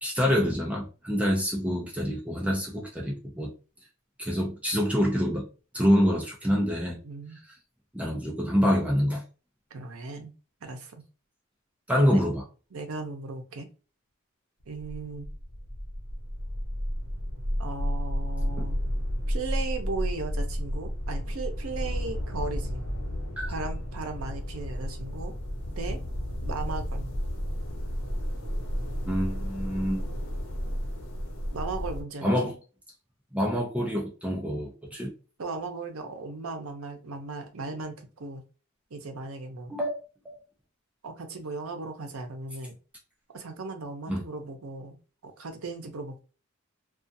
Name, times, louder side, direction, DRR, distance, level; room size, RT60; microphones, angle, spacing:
voice 1, 0.0-3.5 4.2-5.5 5.7-7.0 7.9-9.2 11.9-12.4 18.6-18.7 23.4-23.5 29.1-30.0 32.2-32.6 33.3-35.1 39.7-40.0 40.2-40.4 44.1-44.2, equal, 5° right, -2 dB, 0.5 m, -26 dB
voice 2, 7.0-7.4 9.7-10.3 10.6-11.0 11.9-12.2 12.7-13.7 14.7-15.3 17.6-18.8 19.3-22.8 23.5-25.3 25.8-26.0 26.4-27.1 31.5-32.3 35.4-38.4 38.9-39.7 41.0-42.7 43.3-45.0 45.2-46.2, right 3 dB, 80° right, 5 dB, 0.6 m, -37 dB
sound 1, 14.6-32.0, equal, 90° left, 0.8 m, -32 dB
2.4 x 2.4 x 2.6 m, 0.35 s
head